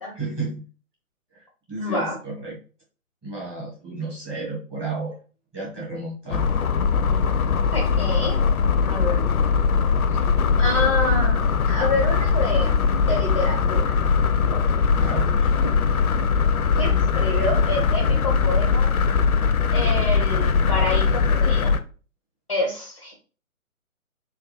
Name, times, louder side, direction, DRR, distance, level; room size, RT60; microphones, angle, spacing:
voice 1, 0.1-0.6 1.7-2.6 3.2-5.1 5.5-6.4 14.9-15.5, right 3 dB, 10° right, -6 dB, 0.9 m, -32 dB
voice 2, 1.8-2.2 7.7-8.4 8.8-9.2 10.6-12.8 13.1-13.9 14.5-14.6 16.7-18.9 19.7-21.7 22.5-23.1, left 2 dB, 25° left, -1 dB, 0.4 m, -27 dB
sound 1, 6.3-21.8, left 5 dB, 85° left, 0.5 m, -20 dB
3.4 x 2.2 x 3.0 m, 0.38 s
figure-of-eight pair, 135°, 42 cm